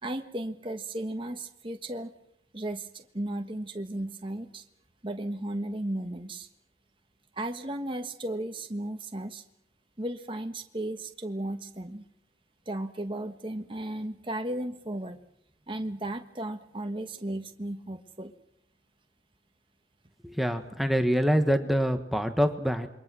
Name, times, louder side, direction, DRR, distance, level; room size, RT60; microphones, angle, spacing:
voice 1, 0.0-2.1 2.5-4.6 5.0-6.5 7.3-9.4 10.0-12.0 12.7-15.2 15.7-18.3, right 1 dB, 30° right, 5 dB, 1.4 m, -35 dB
voice 2, 20.2-22.9, equal, ahead, 6 dB, 1.5 m, -25 dB
28.0 x 23.0 x 6.3 m, 0.74 s
head